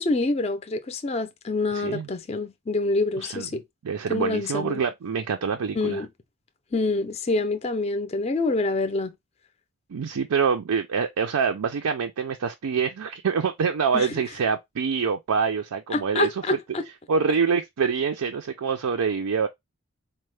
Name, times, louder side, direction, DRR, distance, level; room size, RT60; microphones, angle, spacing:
voice 1, 0.0-3.6 4.1-4.8 5.8-6.1 6.7-9.1 13.9-14.1 15.9-16.8, left 3 dB, 30° left, 0.4 m, -26 dB
voice 2, 1.7-2.1 3.2-3.5 3.8-6.0 9.9-16.3 17.1-19.5, right 6 dB, 90° right, 0.5 m, -25 dB
4.4 x 2.1 x 3.2 m
head